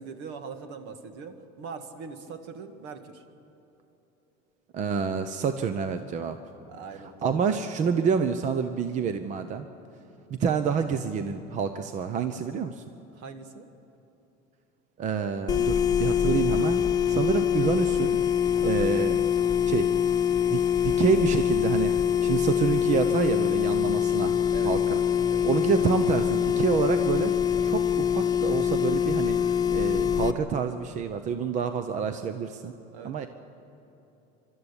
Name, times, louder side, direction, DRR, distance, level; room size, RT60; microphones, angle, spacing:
voice 1, 0.0-3.2 6.7-7.6 13.1-13.7 18.6-18.9 24.5-24.7 25.3-25.5 32.9-33.3, right 5 dB, 65° right, 8 dB, 1.9 m, -42 dB
voice 2, 4.7-6.4 7.2-9.7 10.3-12.8 15.0-18.2 18.6-19.2 19.6-19.9 20.5-21.9 22.2-24.3 24.6-25.0 25.4-27.3 27.6-29.4 29.7-32.7 33.0-33.3, right 6 dB, 40° right, 9 dB, 0.9 m, -27 dB
sound 1, 15.5-30.3, left 8 dB, 20° left, 1.1 m, -24 dB
24.5 x 13.0 x 9.9 m, 3.0 s
cardioid pair, 130°, 19 cm